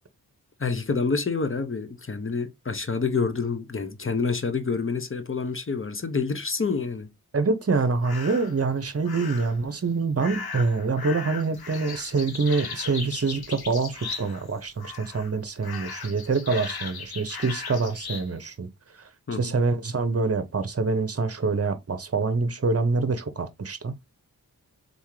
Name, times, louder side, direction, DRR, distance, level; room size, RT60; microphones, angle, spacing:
voice 1, 0.6-7.1 19.3-19.6, left 4 dB, 35° left, 0.9 m, -27 dB
voice 2, 7.3-18.7 19.4-23.9, right 4 dB, 40° right, 0.8 m, -26 dB
sound 1, 8.0-8.6 9.1-9.6 10.2-14.5 14.8-15.3 15.6-18.3, left 5 dB, 80° left, 1.0 m, -37 dB
4.0 x 3.5 x 3.1 m
wide cardioid pair, 60°, 37 cm